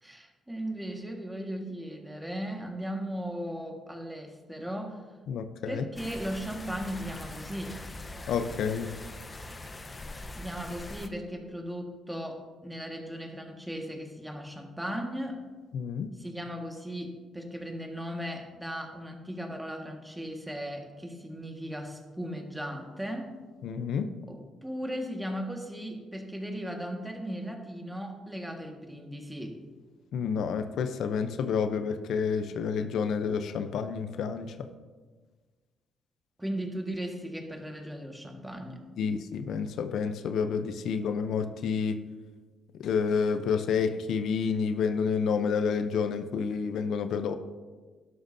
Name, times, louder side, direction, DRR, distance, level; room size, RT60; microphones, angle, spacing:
voice 1, 0.0-5.0 5.7-7.8 10.3-15.4 16.2-23.3 24.3-29.5 36.4-38.8, equal, 5° right, 2 dB, 1.6 m, -37 dB
voice 2, 5.3-5.8 8.3-8.9 15.7-16.1 23.6-24.1 30.1-34.7 39.0-42.0 42.8-47.4, left 6 dB, 75° left, 9 dB, 0.6 m, -29 dB
sound 1, 6.0-11.1, left 2 dB, 25° left, 0.8 m, -42 dB
12.5 x 11.5 x 2.7 m, 1.4 s
cardioid pair, 90°, 0 cm